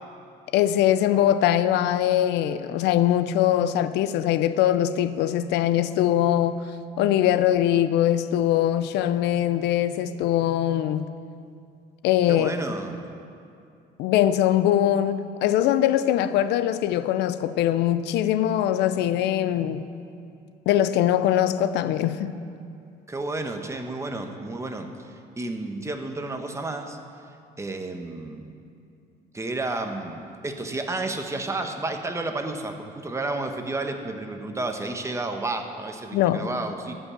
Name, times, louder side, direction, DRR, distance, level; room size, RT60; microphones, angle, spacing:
voice 1, 0.5-6.6 7.0-11.0 12.0-12.5 14.0-19.8 20.7-22.3 36.1-36.5, left 11 dB, 85° left, 13 dB, 0.5 m, -22 dB
voice 2, 12.3-13.0 23.1-24.9 25.4-27.0 27.6-28.5 29.3-36.9, right 2 dB, 15° right, 5 dB, 1.0 m, -31 dB
15.0 x 5.6 x 7.4 m, 2.5 s
cardioid pair, 110°, 17 cm